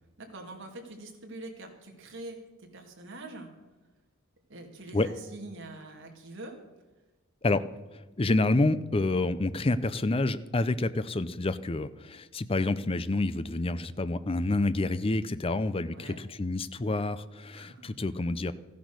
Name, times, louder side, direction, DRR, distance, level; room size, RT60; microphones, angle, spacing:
voice 1, 0.2-3.5 4.5-6.6 15.9-16.2 17.5-17.9, right 2 dB, 55° right, 2 dB, 2.5 m, -44 dB
voice 2, 7.9-18.5, left 2 dB, 25° left, 14 dB, 0.5 m, -28 dB
14.5 x 10.5 x 6.3 m, 1.2 s
head